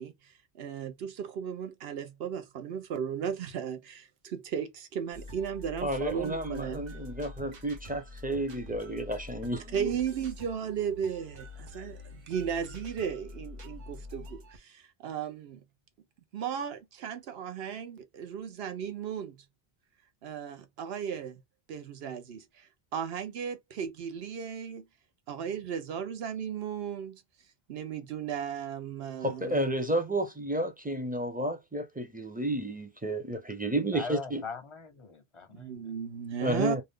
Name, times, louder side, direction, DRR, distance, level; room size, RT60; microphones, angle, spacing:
voice 1, 0.0-6.8 9.7-15.6 16.3-19.4 20.2-21.4 21.7-24.9 25.3-27.2 27.7-29.7 35.5-36.8, right 8 dB, 75° right, 0.9 m, -35 dB
sound 1, 5.1-14.6, left 2 dB, 50° right, 0.8 m, -46 dB
voice 2, 5.8-9.9 29.2-34.4 36.4-36.8, right 1 dB, 10° right, 0.5 m, -31 dB
voice 3, 33.9-35.9, left 5 dB, 40° left, 0.5 m, -41 dB
2.6 x 2.3 x 3.4 m
omnidirectional pair, 1.0 m